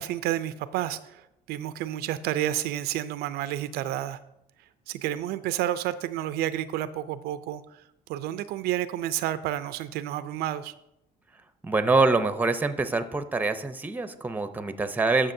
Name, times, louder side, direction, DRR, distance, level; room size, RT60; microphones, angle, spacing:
voice 1, 0.0-4.2 4.9-7.8 8.1-10.7, right 12 dB, 75° right, 14 dB, 0.4 m, -30 dB
voice 2, 11.6-15.3, right 3 dB, 10° right, 10 dB, 0.6 m, -25 dB
13.5 x 6.1 x 2.7 m, 0.84 s
cardioid pair, 100°, 17 cm